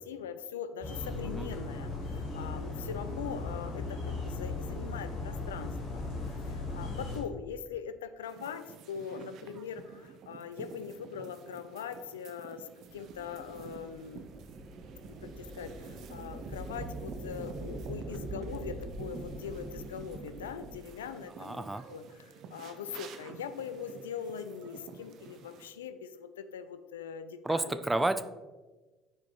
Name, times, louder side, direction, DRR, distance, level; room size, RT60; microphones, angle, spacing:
voice 1, 0.0-6.0 6.5-14.2 15.2-21.6 21.9-27.8, left 7 dB, 80° left, 12 dB, 0.4 m, -42 dB
sound 1, 0.8-7.2, left 3 dB, 60° left, 1.7 m, -37 dB
sound 2, 8.2-25.7, right 6 dB, 55° right, 0.6 m, -51 dB
sound 3, 12.9-20.9, right 2 dB, 30° right, 0.9 m, -43 dB
voice 2, 21.4-21.8 27.4-28.2, right 2 dB, 10° right, 11 dB, 0.5 m, -30 dB
9.3 x 4.9 x 3.0 m, 1.2 s
figure-of-eight pair, 60°, 0 cm